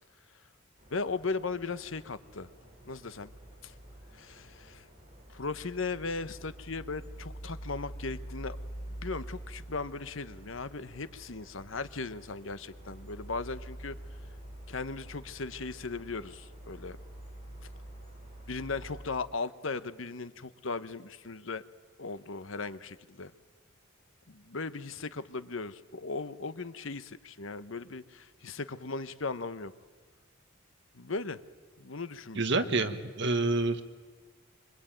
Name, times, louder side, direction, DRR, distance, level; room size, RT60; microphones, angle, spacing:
sound 1, 0.8-19.0, right 1 dB, 30° right, 6.8 m, -47 dB
voice 1, 0.9-2.5 2.8-3.3 3.6-3.7 4.1-4.9 5.3-8.6 8.9-14.0 14.7-17.0 18.5-21.6 22.0-23.3 24.3-29.7 30.9-31.4 31.8-32.9, left 4 dB, 70° left, 13 dB, 1.1 m, -37 dB
voice 2, 32.4-33.8, right 3 dB, 60° right, 8 dB, 1.7 m, -28 dB
26.0 x 25.0 x 9.2 m, 1.5 s
head